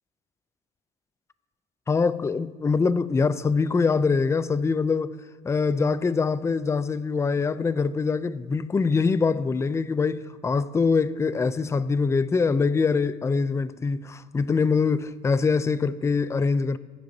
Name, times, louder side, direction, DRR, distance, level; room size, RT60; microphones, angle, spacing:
voice 1, 1.9-5.2 5.4-16.8, left 4 dB, 15° left, 0.4 m, -24 dB
20.5 x 10.5 x 2.7 m
cardioid pair, 110°, 17 cm